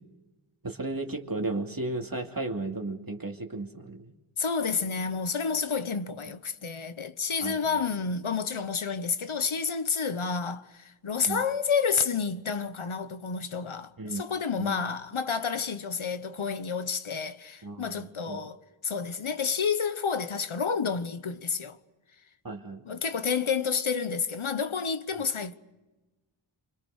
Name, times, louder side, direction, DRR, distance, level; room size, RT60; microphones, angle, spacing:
voice 1, 0.6-4.1 7.4-7.7 11.3-11.4 14.0-14.2 14.6-14.8 17.6-18.4 22.4-22.8, right 2 dB, 45° right, 2.6 m, -34 dB
voice 2, 4.4-18.6 18.8-21.8 22.8-25.6, left 5 dB, 75° left, 1.3 m, -30 dB
28.5 x 26.0 x 6.5 m
wide cardioid pair, 75°, 49 cm